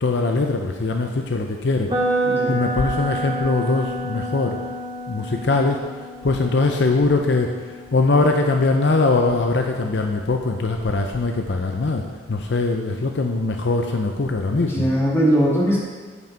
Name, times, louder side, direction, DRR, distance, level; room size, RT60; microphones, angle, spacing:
voice 1, 0.0-4.6 5.1-5.9 6.2-14.9, left 3 dB, 60° left, 3 dB, 0.6 m, -22 dB
sound 1, 1.9-9.8, right 1 dB, 25° right, 1.5 m, -29 dB
voice 2, 2.2-2.6 14.5-15.8, equal, 15° left, -6 dB, 2.0 m, -20 dB
8.2 x 7.3 x 4.5 m, 1.4 s
head